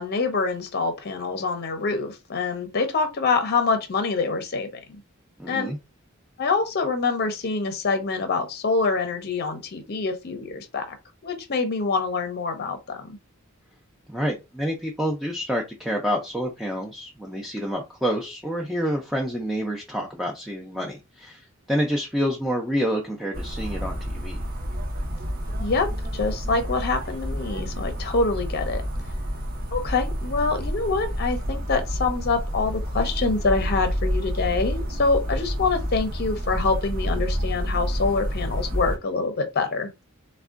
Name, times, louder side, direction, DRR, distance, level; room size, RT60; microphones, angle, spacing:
voice 1, 0.0-5.0 5.5-5.7 6.4-11.0 11.2-13.2 25.6-28.8 29.7-40.0, left 4 dB, 50° left, 0.6 m, -25 dB
voice 2, 5.4-5.8 14.1-24.4, equal, ahead, 0.4 m, -28 dB
sound 1, 23.3-39.0, equal, 45° right, 0.7 m, -29 dB
3.5 x 2.1 x 2.4 m
head